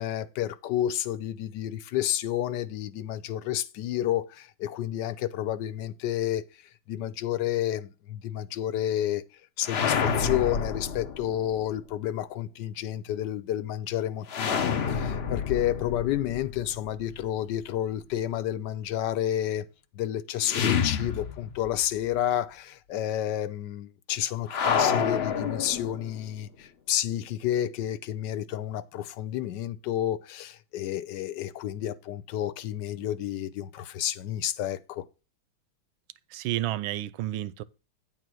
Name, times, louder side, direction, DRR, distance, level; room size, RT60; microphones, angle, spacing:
voice 1, 0.0-6.4 6.9-9.2 9.6-19.7 19.9-35.0, left 12 dB, 70° left, 1.2 m, -30 dB
sound 1, 9.6-11.6 14.3-17.3 20.4-21.8 22.1-22.2 24.5-26.2, left 6 dB, 90° left, 0.5 m, -28 dB
voice 2, 36.3-37.6, right 14 dB, 85° right, 1.4 m, -31 dB
9.5 x 4.1 x 6.2 m
omnidirectional pair, 2.1 m